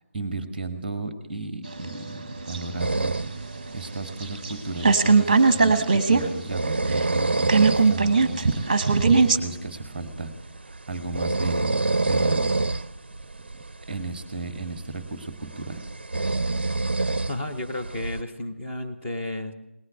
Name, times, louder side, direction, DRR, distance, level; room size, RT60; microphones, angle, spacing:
voice 1, 0.1-3.2 3.7-9.0 9.3-11.7 12.0-12.5 13.9-15.8, right 3 dB, 10° right, 9 dB, 1.3 m, -34 dB
sound 1, 1.7-4.5 4.8-6.3 6.5-6.6 6.9-9.4, right 4 dB, 25° right, 1.0 m, -20 dB
sound 2, 2.8-18.2, right 2 dB, 50° right, 0.5 m, -29 dB
voice 2, 17.3-19.5, left 1 dB, 10° left, -1 dB, 0.7 m, -32 dB
19.0 x 9.7 x 7.1 m, 0.97 s
figure-of-eight pair, 160°, 7 cm